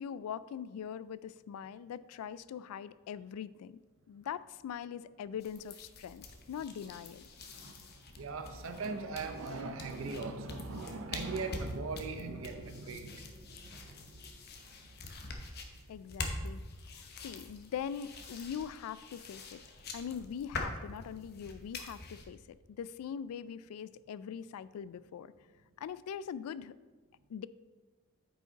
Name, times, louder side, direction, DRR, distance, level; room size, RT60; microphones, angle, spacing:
voice 1, 0.0-3.8 4.1-7.3 15.9-16.6 16.9-19.6 19.9-22.4 22.7-25.3 25.8-26.7 27.3-27.5, left 8 dB, 85° left, 17 dB, 0.3 m, -42 dB
sound 1, 5.4-22.3, left 3 dB, 45° left, 0.9 m, -45 dB
voice 2, 7.4-14.4 14.8-15.0 15.8-15.9, right 3 dB, 65° right, 6 dB, 0.6 m, -41 dB
sound 2, 11.7-15.3, equal, 10° right, 1.9 m, -62 dB
8.9 x 5.1 x 3.9 m, 1.3 s
head